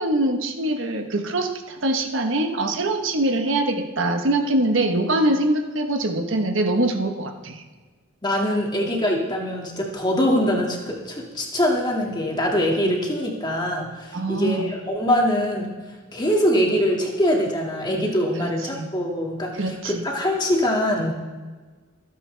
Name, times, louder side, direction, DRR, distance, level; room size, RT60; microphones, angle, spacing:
voice 1, 0.0-7.6 12.8-13.0 14.1-14.7 18.4-18.9 19.5-20.0, right 1 dB, 65° right, 5 dB, 1.3 m, -23 dB
voice 2, 8.2-15.7 16.1-21.1, equal, 20° left, -1 dB, 2.2 m, -23 dB
25.5 x 9.9 x 3.4 m, 1.3 s
head